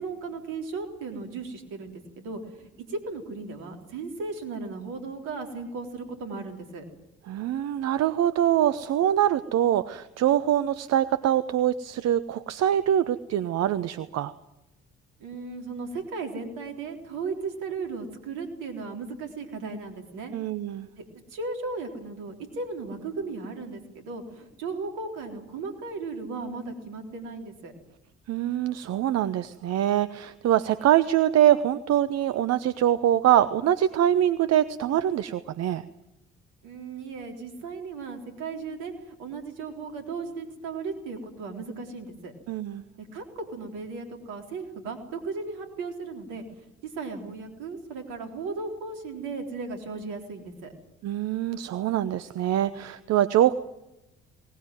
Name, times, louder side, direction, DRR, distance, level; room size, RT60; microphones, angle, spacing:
voice 1, 0.0-6.8 15.2-20.3 21.0-21.1 21.3-27.7 36.6-42.3 43.0-50.7, right 4 dB, 70° right, 5 dB, 3.9 m, -36 dB
voice 2, 7.3-14.3 20.3-20.9 28.3-35.8 42.5-42.8 51.0-53.5, right 11 dB, 55° right, 13 dB, 0.9 m, -24 dB
21.0 x 19.5 x 9.3 m, 0.93 s
figure-of-eight pair, 45°, 32 cm